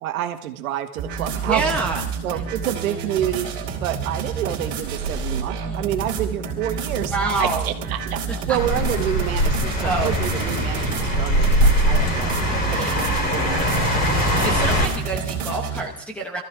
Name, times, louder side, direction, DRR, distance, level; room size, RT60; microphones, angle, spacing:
voice 1, 0.0-1.7 2.2-3.5 3.8-8.2 8.5-12.3 12.7-12.8 13.3-14.1, right 11 dB, 70° right, 6 dB, 1.7 m, -28 dB
sound 1, 1.0-15.8, right 5 dB, 25° right, 2.7 m, -29 dB
voice 2, 1.5-2.0 5.5-5.9 7.1-7.7 9.8-10.1 12.5-13.1 14.4-16.4, right 3 dB, 5° left, 2 dB, 0.9 m, -27 dB
sound 2, 8.5-14.9, equal, 20° left, 2.7 m, -21 dB
22.0 x 14.5 x 3.7 m, 0.74 s
supercardioid pair, 180°, 44 cm